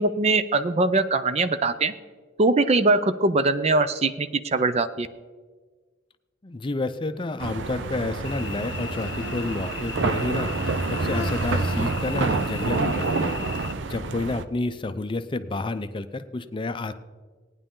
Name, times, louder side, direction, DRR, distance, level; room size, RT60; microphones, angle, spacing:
voice 1, 0.0-1.9 2.4-5.1, right 3 dB, 35° right, 12 dB, 0.5 m, -22 dB
voice 2, 6.4-13.4 13.9-16.9, left 2 dB, 25° left, 10 dB, 0.5 m, -30 dB
sound 1, 7.4-14.4, right 3 dB, 90° right, 0.6 m, -28 dB
Cricket / Buzz, 8.2-13.7, left 7 dB, 90° left, 0.8 m, -37 dB
18.0 x 9.7 x 3.8 m, 1.4 s
head